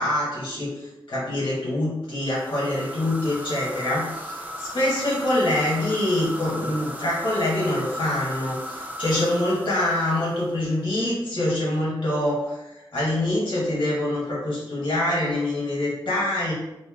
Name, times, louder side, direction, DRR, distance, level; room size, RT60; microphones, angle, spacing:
voice 1, 0.0-16.5, left 1 dB, 55° left, -6 dB, 1.3 m, -25 dB
sound 1, 2.2-10.8, equal, 20° right, 0.5 m, -36 dB
3.2 x 2.6 x 3.6 m, 0.94 s
wide cardioid pair, 95°, 9 cm